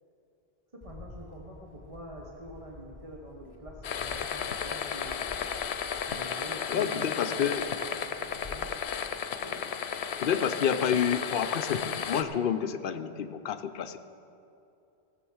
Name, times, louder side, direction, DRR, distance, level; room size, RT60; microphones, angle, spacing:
Bird, 0.8-8.8, left 3 dB, 25° left, 1.0 m, -49 dB
voice 1, 0.8-5.4 6.1-7.5 8.0-8.7 9.4-9.6, right 1 dB, 35° right, -1 dB, 1.2 m, -45 dB
sound 1, 3.8-12.2, left 7 dB, 85° left, 0.9 m, -34 dB
voice 2, 6.7-7.6 10.2-14.0, left 8 dB, 60° left, 9 dB, 0.8 m, -29 dB
15.5 x 7.7 x 6.3 m, 2.7 s
omnidirectional pair, 1.1 m